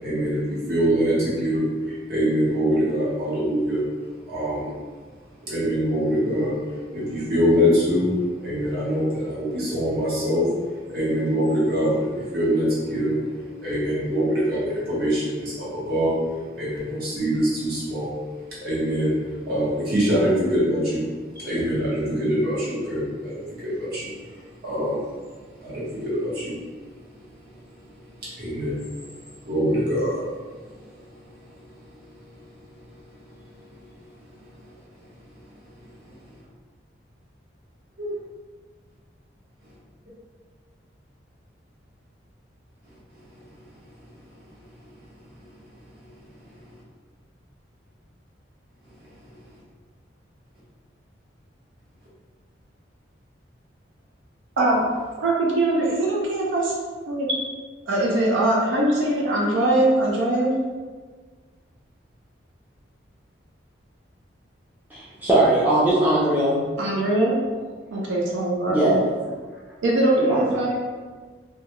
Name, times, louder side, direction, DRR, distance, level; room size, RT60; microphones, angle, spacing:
voice 1, 0.0-3.8 4.3-4.7 5.4-6.5 6.9-8.1 8.4-18.2 18.5-19.1 19.5-21.0 21.3-25.1 25.3-26.5 28.2-28.8 29.4-30.3 30.7-30.9 32.0-32.1 38.0-38.1, equal, 50° right, -8 dB, 1.0 m, -24 dB
voice 2, 55.2-56.7 57.1-57.5 57.9-60.5 66.8-67.4 67.9-69.0 69.8-70.8, right 1 dB, 85° right, -3 dB, 0.4 m, -22 dB
voice 3, 64.9-66.6 68.7-69.0 70.3-70.5, right 1 dB, 10° right, -9 dB, 0.5 m, -20 dB
2.3 x 2.2 x 2.9 m, 1.5 s
head